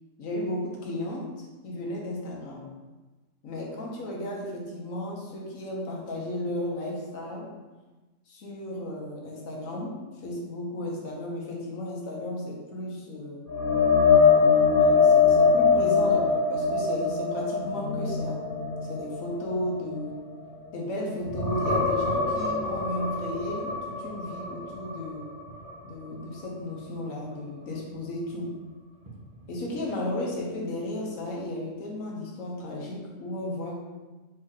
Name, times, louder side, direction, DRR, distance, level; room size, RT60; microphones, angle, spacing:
voice 1, 0.2-2.7 3.4-7.5 8.3-13.5 14.2-18.4 18.9-20.2 20.7-25.3 25.8-28.5 29.5-33.8, left 1 dB, 75° left, -2 dB, 1.2 m, -34 dB
sound 1, 13.5-20.9 21.2-25.1 25.5-25.7 29.1-29.2, left 5 dB, 15° right, 0.9 m, -23 dB
4.4 x 2.9 x 3.7 m, 1.2 s
omnidirectional pair, 1.4 m